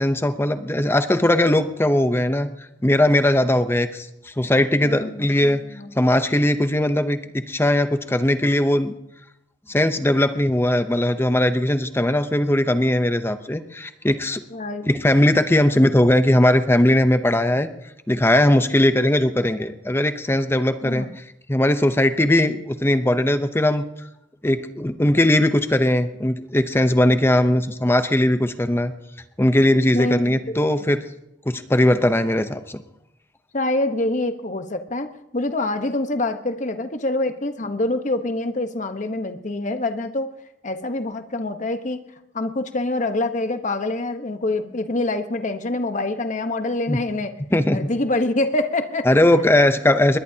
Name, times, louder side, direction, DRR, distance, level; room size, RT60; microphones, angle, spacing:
voice 1, 0.0-2.5 2.8-5.7 6.0-8.9 9.7-14.4 14.9-17.7 18.1-21.1 21.5-23.8 24.4-28.9 29.4-31.0 31.5-32.8 46.9-47.0 47.5-47.8 49.1-50.2, left 1 dB, 15° left, 9 dB, 0.7 m, -19 dB
voice 2, 4.8-5.9 14.5-14.9 20.8-21.1 29.9-30.6 33.5-35.1 35.3-40.3 40.6-42.0 42.3-47.3 47.7-49.1, left 2 dB, 40° left, 8 dB, 1.1 m, -25 dB
22.0 x 20.5 x 2.8 m, 0.84 s
head